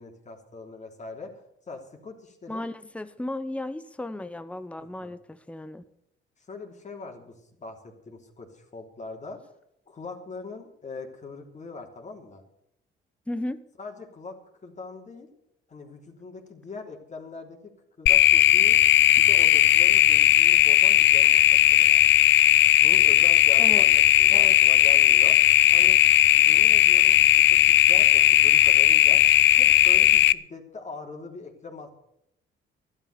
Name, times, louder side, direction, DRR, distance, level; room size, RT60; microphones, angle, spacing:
voice 1, 0.0-2.7 4.8-5.2 6.4-7.3 7.6-9.4 9.9-12.4 13.8-14.4 14.6-15.3 15.7-17.7 18.0-18.8 19.2-22.0 22.8-25.4 25.7-26.0 26.3-29.2 29.6-31.9, left 3 dB, 35° left, 2 dB, 3.4 m, -41 dB
voice 2, 2.5-5.8 13.3-13.6 23.6-23.8 24.3-24.5, left 1 dB, 5° left, 12 dB, 0.9 m, -34 dB
sound 1, 18.1-30.3, left 13 dB, 70° left, 0.5 m, -17 dB
13.5 x 12.0 x 6.8 m, 0.76 s
cardioid pair, 90°, 20 cm